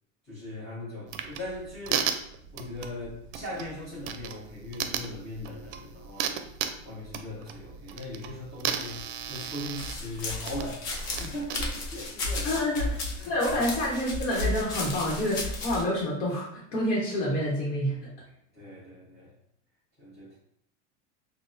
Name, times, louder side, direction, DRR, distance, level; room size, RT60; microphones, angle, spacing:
voice 1, 0.2-2.1 2.5-6.4 6.8-12.6 13.2-13.3 18.5-19.3 20.0-20.4, left 1 dB, 15° left, -10 dB, 1.2 m, -39 dB
sound 1, 1.1-11.6, right 8 dB, 65° right, 0.5 m, -36 dB
sound 2, 9.8-15.8, left 2 dB, 50° left, 0.9 m, -33 dB
voice 2, 12.4-18.1, left 1 dB, 85° left, -4 dB, 1.0 m, -28 dB
3.9 x 2.1 x 2.5 m, 0.70 s
supercardioid pair, 140°, 37 cm